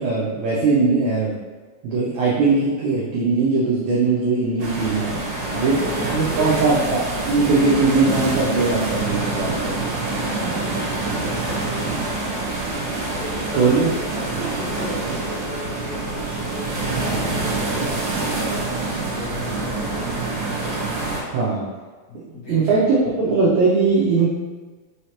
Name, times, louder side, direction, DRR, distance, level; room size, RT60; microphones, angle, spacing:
voice 1, 0.0-1.3 1.8-5.2 5.5-5.7 6.1-7.0 7.3-9.8 13.5-13.9 21.3-21.7 22.1-24.3, right 4 dB, 85° right, -6 dB, 1.6 m, -20 dB
sound 1, 4.6-21.2, right 3 dB, 70° right, 2.0 m, -26 dB
voice 2, 5.1-6.7 10.0-12.3 13.1-18.7 19.1-20.5 22.1-22.8, left 2 dB, 90° left, -7 dB, 1.6 m, -36 dB
5.5 x 3.2 x 2.8 m, 1.4 s
omnidirectional pair, 4.2 m